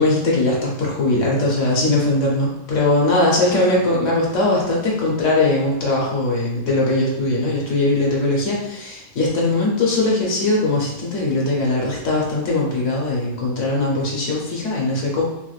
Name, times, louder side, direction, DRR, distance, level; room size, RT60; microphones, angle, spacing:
voice 1, 0.0-15.2, left 2 dB, 80° left, -3 dB, 1.1 m, -20 dB
2.9 x 2.3 x 3.2 m, 0.86 s
omnidirectional pair, 1.3 m